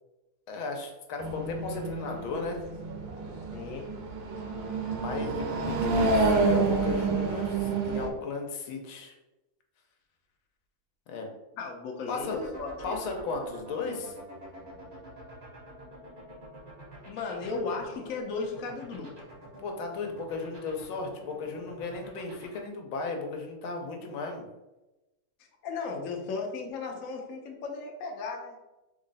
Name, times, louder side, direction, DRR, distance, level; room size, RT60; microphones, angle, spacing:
voice 1, 0.5-2.6 4.9-9.1 11.1-11.3 12.1-12.4 12.8-14.2 19.6-24.5, left 3 dB, 85° left, 3 dB, 1.6 m, -35 dB
sound 1, 1.2-8.1, right 3 dB, 85° right, 1.5 m, -28 dB
voice 2, 3.5-3.9 11.6-13.0 17.1-19.1 25.6-28.5, left 4 dB, 60° left, 1 dB, 0.9 m, -35 dB
sound 2, 12.2-22.6, right 1 dB, 35° right, 0.6 m, -47 dB
3.8 x 3.1 x 3.9 m, 1.0 s
omnidirectional pair, 2.2 m